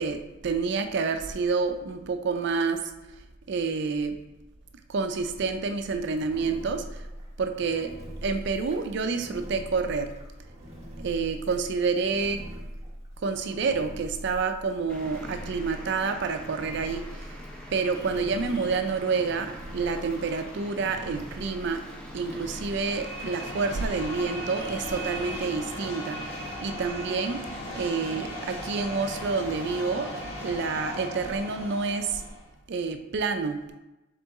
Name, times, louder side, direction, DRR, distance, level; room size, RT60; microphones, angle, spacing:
voice 1, 0.0-2.9 3.5-4.2 4.9-7.0 7.4-7.9 8.2-10.1 11.0-12.4 13.2-17.3 17.7-21.8 22.1-26.3 26.6-27.4 27.7-30.1 30.4-32.2 32.7-33.7, right 4 dB, 55° right, 7 dB, 0.4 m, -28 dB
Engine, 6.0-23.3, equal, 30° right, 0.9 m, -43 dB
Traffic noise roadway noise, 14.9-29.9, equal, 5° left, 0.5 m, -45 dB
sound 1, 22.6-32.5, equal, 60° left, 1.5 m, -37 dB
4.1 x 3.7 x 3.5 m, 1.0 s
head